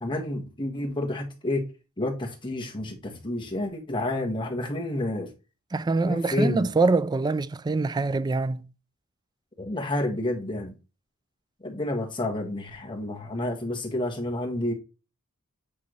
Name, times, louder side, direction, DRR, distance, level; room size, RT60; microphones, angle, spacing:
voice 1, 0.0-1.6 2.0-5.3 6.0-6.7 9.6-10.7 11.6-14.7, left 1 dB, 20° left, 1.5 m, -29 dB
voice 2, 5.7-8.7, right 3 dB, 20° right, 0.3 m, -24 dB
8.4 x 3.6 x 3.1 m
head